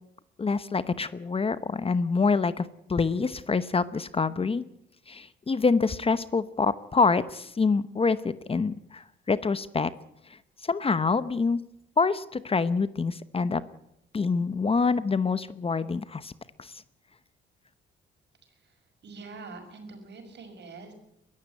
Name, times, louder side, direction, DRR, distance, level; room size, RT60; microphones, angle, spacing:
voice 1, 0.4-4.6 5.1-9.9 10.3-10.4 10.6-11.6 12.0-13.6 14.1-16.3 16.6-16.7, left 4 dB, 30° left, 14 dB, 0.9 m, -26 dB
voice 2, 18.4-18.8 19.0-20.9, right 3 dB, 60° right, 6 dB, 6.2 m, -45 dB
22.0 x 14.5 x 9.4 m, 0.78 s
cardioid pair, 90°, 20 cm